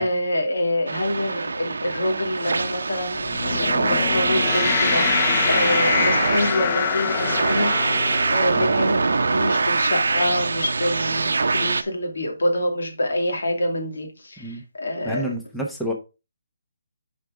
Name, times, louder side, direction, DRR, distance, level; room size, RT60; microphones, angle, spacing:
voice 1, 0.0-15.3, left 1 dB, 85° left, 2.6 m, -26 dB
sound 1, 0.9-11.8, right 3 dB, 90° right, 0.6 m, -23 dB
sound 2, 3.2-9.7, left 10 dB, 25° left, 0.3 m, -26 dB
voice 2, 15.0-15.9, equal, ahead, 0.9 m, -29 dB
6.5 x 5.1 x 4.8 m
hypercardioid pair, 170°, 0 cm